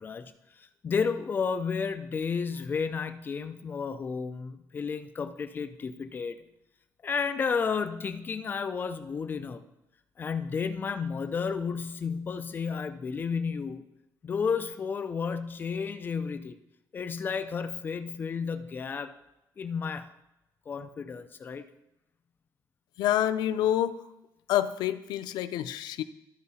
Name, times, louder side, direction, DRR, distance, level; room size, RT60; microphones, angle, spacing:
voice 1, 0.0-6.4 7.0-9.6 10.2-13.8 14.2-16.6 16.9-19.2 19.6-20.1 20.7-21.6, left 5 dB, 30° left, 10 dB, 0.5 m, -32 dB
voice 2, 23.0-24.0 24.5-26.0, left 11 dB, 90° left, 12 dB, 0.5 m, -27 dB
13.5 x 4.7 x 4.2 m, 0.90 s
cardioid pair, 160°, 7 cm